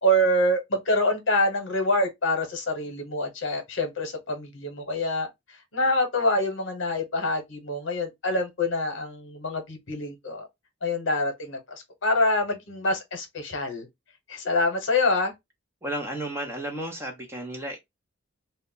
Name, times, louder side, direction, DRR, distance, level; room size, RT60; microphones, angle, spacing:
voice 1, 0.0-10.5 10.8-13.9 14.3-15.3, left 1 dB, 65° left, 0.8 m, -26 dB
voice 2, 15.8-17.8, right 1 dB, 10° right, 0.5 m, -33 dB
2.2 x 2.0 x 3.6 m
head